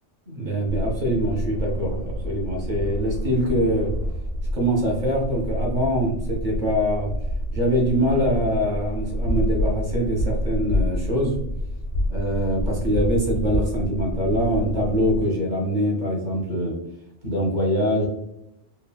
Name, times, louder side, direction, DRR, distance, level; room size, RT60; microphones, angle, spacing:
voice 1, 0.3-3.9 4.5-7.1 7.5-11.4 12.1-16.8 17.2-18.1, equal, 50° right, -1 dB, 0.6 m, -23 dB
sound 1, 0.7-15.2, equal, 85° left, 1.0 m, -28 dB
3.2 x 2.0 x 2.3 m, 0.81 s
omnidirectional pair, 1.2 m